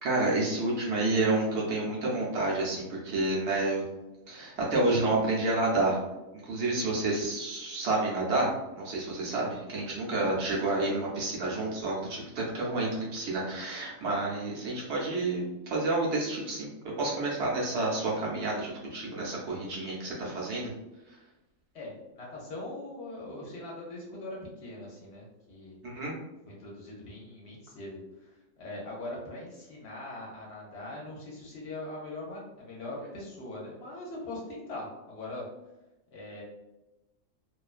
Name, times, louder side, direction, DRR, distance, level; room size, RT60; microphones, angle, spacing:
voice 1, 0.0-3.8 4.3-6.0 6.4-16.7 17.0-20.7 25.8-26.1, right 2 dB, 65° right, -4 dB, 0.8 m, -29 dB
voice 2, 21.7-25.8 26.4-35.5 36.1-36.4, left 2 dB, 60° left, -3 dB, 0.8 m, -41 dB
2.4 x 2.2 x 2.3 m, 0.99 s
omnidirectional pair, 1.4 m